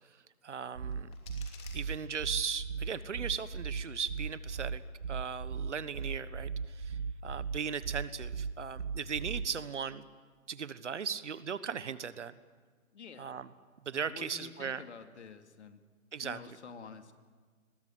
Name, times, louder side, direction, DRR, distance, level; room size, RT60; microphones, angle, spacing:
voice 1, 0.4-1.1 1.7-4.8 5.1-10.0 10.5-12.3 13.2-13.5 13.8-14.8 16.1-16.4, right 7 dB, 55° right, 15 dB, 1.3 m, -38 dB
sound 1, 0.7-2.6, left 5 dB, 15° left, 3.0 m, -56 dB
sound 2, 0.7-9.7, right 5 dB, 90° right, 1.0 m, -37 dB
voice 2, 12.9-13.5 13.9-15.8 16.2-17.1, left 5 dB, 50° left, 7 dB, 2.5 m, -49 dB
28.5 x 22.0 x 8.1 m, 1.5 s
figure-of-eight pair, 150°, 42 cm